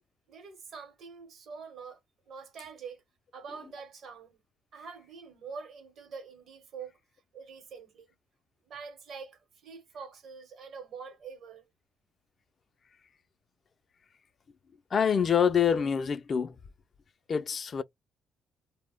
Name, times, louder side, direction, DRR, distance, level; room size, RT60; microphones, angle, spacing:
voice 1, 0.3-2.0 2.3-3.0 3.3-4.4 4.7-7.0 7.3-8.1 8.6-11.6, right 5 dB, 65° right, 0.8 m, -45 dB
voice 2, 14.9-16.5 17.3-17.8, left 7 dB, 50° left, 0.3 m, -26 dB
2.0 x 2.0 x 3.4 m
cardioid pair, 90°, 0 cm